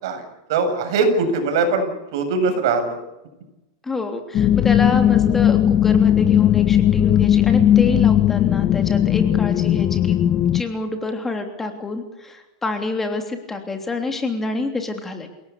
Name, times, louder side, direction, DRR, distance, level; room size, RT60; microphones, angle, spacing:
voice 1, 0.0-3.0, right 3 dB, 65° right, 6 dB, 7.5 m, -21 dB
voice 2, 3.9-10.2 10.5-15.3, left 3 dB, 10° left, 5 dB, 3.2 m, -28 dB
sound 1, 4.3-10.6, left 10 dB, 30° left, 1.1 m, -17 dB
29.0 x 18.0 x 8.6 m, 0.98 s
supercardioid pair, 145°, 2 cm